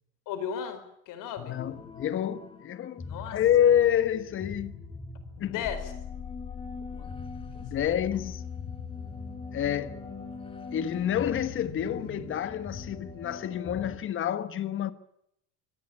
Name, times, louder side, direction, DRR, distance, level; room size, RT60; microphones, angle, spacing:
voice 1, 0.3-1.6 3.0-3.4 5.4-5.9 6.9-7.2 7.5-7.6, left 8 dB, 45° left, 4.5 m, -36 dB
voice 2, 1.4-4.8 5.4-5.6 7.6-8.4 9.5-10.1 10.7-14.9, left 10 dB, 30° left, 1.4 m, -28 dB
sound 1, 1.6-14.0, left 5 dB, 10° left, 2.2 m, -41 dB
25.5 x 18.0 x 8.4 m
cardioid pair, 160°, 44 cm